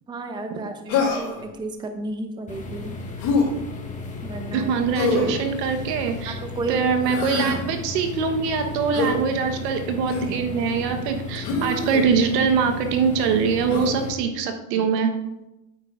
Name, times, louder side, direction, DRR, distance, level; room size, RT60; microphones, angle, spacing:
voice 1, 0.1-3.0 4.2-4.7 6.0-6.8, right 2 dB, 10° right, 6 dB, 0.6 m, -33 dB
Human voice, 0.9-1.4 3.2-3.5 4.9-5.4 7.0-7.6 8.9-9.2 10.1-10.4 11.4-12.0 13.7-13.9, left 3 dB, 50° left, 3.0 m, -24 dB
sound 1, 2.5-14.1, left 3 dB, 15° left, 1.2 m, -35 dB
voice 2, 4.5-6.4 6.7-15.1, right 6 dB, 75° right, 6 dB, 1.3 m, -23 dB
8.8 x 8.7 x 2.5 m, 0.94 s
supercardioid pair, 120°, 49 cm